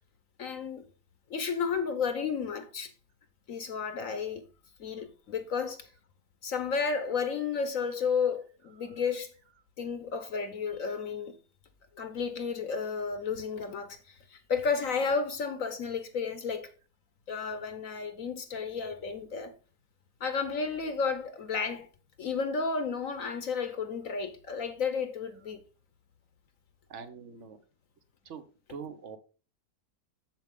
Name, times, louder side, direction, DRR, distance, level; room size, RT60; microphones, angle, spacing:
voice 1, 0.4-0.9 1.3-2.9 3.5-4.5 4.8-5.9 6.4-9.3 9.8-11.3 12.0-16.7 17.3-19.5 20.2-21.9 22.2-25.6, left 5 dB, 60° left, 1.2 m, -32 dB
voice 2, 26.9-27.6 28.2-29.2, right 6 dB, 50° right, 1.1 m, -44 dB
7.5 x 7.4 x 3.6 m
omnidirectional pair, 1.8 m